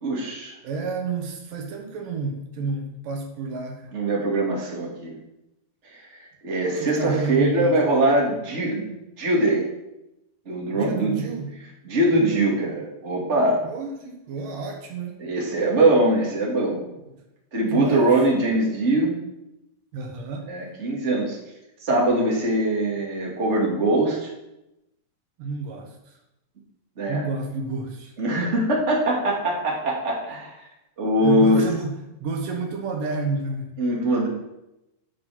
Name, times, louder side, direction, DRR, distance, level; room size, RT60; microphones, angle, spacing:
voice 1, 0.0-0.5 3.9-5.2 5.9-9.7 10.5-11.2 11.8-13.6 15.2-16.8 17.5-19.1 20.5-21.4 21.8-24.3 27.0-27.2 28.2-30.5 31.0-31.6 33.8-34.3, right 1 dB, 20° right, -3 dB, 2.4 m, -22 dB
voice 2, 0.6-4.0 6.8-7.8 10.7-11.5 13.6-15.2 17.7-18.1 19.9-20.5 25.4-26.2 27.1-28.1 31.2-33.7, right 4 dB, 75° right, 2 dB, 2.9 m, -30 dB
11.0 x 6.0 x 6.1 m, 0.89 s
omnidirectional pair, 3.9 m